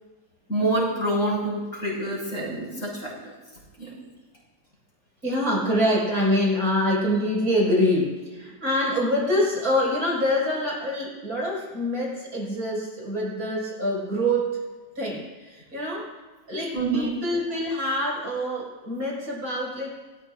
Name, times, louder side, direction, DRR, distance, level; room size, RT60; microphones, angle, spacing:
voice 1, 0.5-3.1 3.8-3.9 16.7-17.1, right 2 dB, 45° left, -4 dB, 6.7 m, -26 dB
voice 2, 5.2-14.6 14.9-16.1 16.5-20.0, equal, 55° right, -4 dB, 6.9 m, -25 dB
25.5 x 20.0 x 2.7 m, 1.3 s
omnidirectional pair, 1.9 m